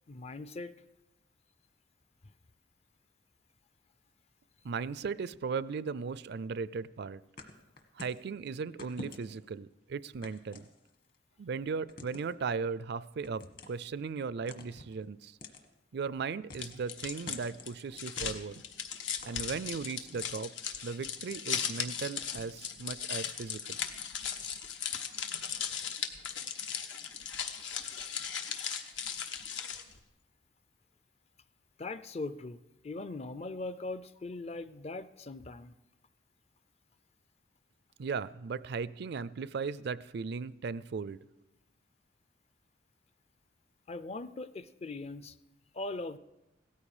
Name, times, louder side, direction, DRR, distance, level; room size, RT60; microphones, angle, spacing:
voice 1, 0.1-0.7 31.8-32.6 32.8-35.7 43.9-45.4 45.7-46.2, left 2 dB, 35° left, 14 dB, 0.5 m, -40 dB
voice 2, 4.6-7.2 8.0-10.7 11.4-15.4 15.9-18.6 19.3-20.5 20.8-23.8 38.0-41.2, right 5 dB, 60° right, 18 dB, 0.4 m, -37 dB
sound 1, 7.4-8.2 8.8-9.5 10.2-11.2 11.9-12.4 13.2-13.9 14.5-15.0 15.4-15.7 16.5-16.9 17.3-17.8 18.2-20.0, left 2 dB, 50° left, 1.7 m, -49 dB
sound 2, 16.5-30.0, left 8 dB, 80° left, 1.2 m, -37 dB
16.5 x 14.0 x 4.9 m, 1.0 s
head